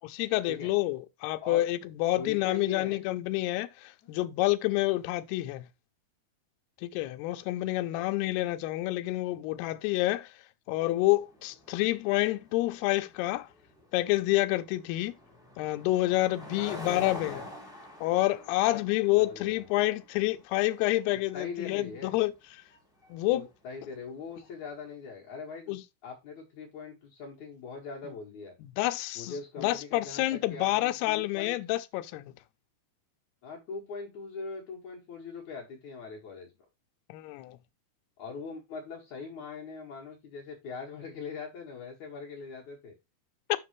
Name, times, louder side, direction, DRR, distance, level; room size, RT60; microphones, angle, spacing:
voice 1, 0.1-5.7 6.8-10.3 10.7-13.5 13.9-15.1 15.6-17.5 18.0-22.3 23.1-23.5 25.7-25.8 28.6-32.3 37.1-37.6, left 17 dB, 80° left, 2.7 m, -28 dB
voice 2, 2.2-3.0 4.0-4.3 7.9-8.4 16.6-17.4 18.6-18.8 19.2-19.7 21.3-22.1 23.3-28.5 29.1-31.6 33.4-36.5 38.2-42.9, left 4 dB, 55° left, 2.7 m, -41 dB
sound 1, 11.1-24.6, left 1 dB, ahead, 2.3 m, -48 dB
7.5 x 6.0 x 3.1 m
omnidirectional pair, 4.7 m